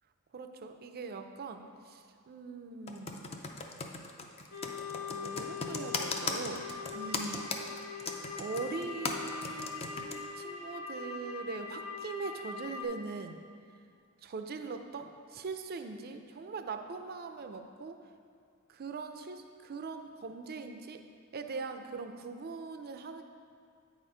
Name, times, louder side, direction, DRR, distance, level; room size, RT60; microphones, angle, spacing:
voice 1, 0.3-3.3 5.1-7.4 8.4-13.4 14.2-18.0 18.7-21.0 21.3-23.2, right 4 dB, 45° right, 7 dB, 0.4 m, -41 dB
Computer keyboard, 2.9-10.2, left 4 dB, 30° left, 0.5 m, -37 dB
sound 1, 4.5-12.8, left 5 dB, 70° left, 0.7 m, -42 dB
8.4 x 4.3 x 4.9 m, 2.4 s
head